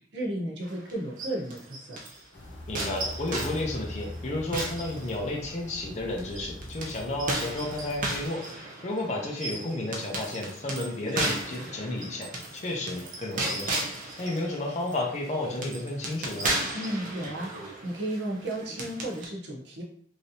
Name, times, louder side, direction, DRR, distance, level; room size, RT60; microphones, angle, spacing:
voice 1, 0.1-2.0 16.7-19.8, right 1 dB, 75° right, -2 dB, 0.8 m, -34 dB
sound 1, 0.6-2.2 2.7-5.6 6.2-19.3, right 2 dB, 45° right, 0.6 m, -35 dB
sound 2, 2.3-8.3, left 1 dB, 85° left, 0.6 m, -42 dB
voice 2, 2.7-13.8 14.2-16.5, left 2 dB, 40° left, -1 dB, 0.5 m, -32 dB
3.2 x 2.7 x 2.7 m, 0.62 s
head